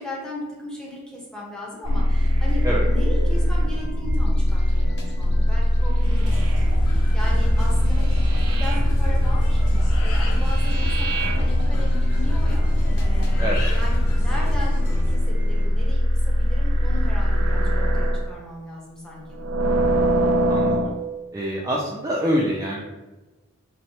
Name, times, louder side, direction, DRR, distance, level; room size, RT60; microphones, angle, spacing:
voice 1, 0.0-19.4, left 1 dB, 5° left, -4 dB, 0.9 m, -37 dB
sound 1, 1.8-18.3 19.3-21.0, equal, 80° right, 0.4 m, -20 dB
sound 2, 2.1-15.7, left 1 dB, 50° left, 0.7 m, -41 dB
sound 3, 6.0-15.1, left 1 dB, 90° left, 0.8 m, -31 dB
voice 2, 13.4-13.7 20.5-21.0 21.3-22.8, equal, 15° right, -4 dB, 0.4 m, -25 dB
3.5 x 3.2 x 2.9 m, 1.1 s
head